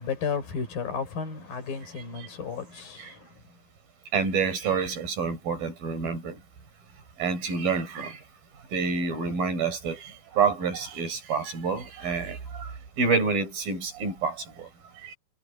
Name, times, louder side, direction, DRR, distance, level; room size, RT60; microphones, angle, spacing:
voice 1, 0.0-3.4, left 6 dB, 75° left, 6.2 m, -33 dB
voice 2, 4.1-6.4 7.2-8.2 8.7-12.7 13.0-14.7 15.0-15.2, right 5 dB, 75° right, 6.1 m, -28 dB
omnidirectional pair, 4.1 m